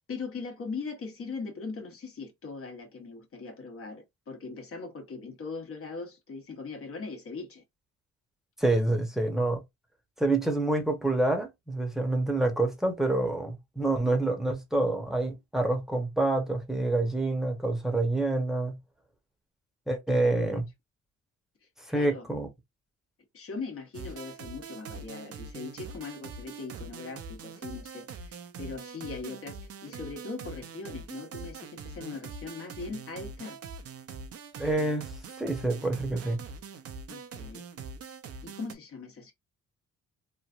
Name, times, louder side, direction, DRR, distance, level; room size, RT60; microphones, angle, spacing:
voice 1, 0.1-7.6 20.1-20.4 21.9-22.3 23.3-33.6 37.1-37.6 38.4-39.3, left 4 dB, 45° left, 1.1 m, -40 dB
voice 2, 8.6-9.6 10.2-18.8 19.9-20.7 21.9-22.5 34.6-35.1 35.4-36.4, right 2 dB, ahead, 0.9 m, -27 dB
sound 1, 23.9-38.7, right 4 dB, 50° right, 0.6 m, -43 dB
3.1 x 2.5 x 2.4 m
cardioid pair, 90°, 30 cm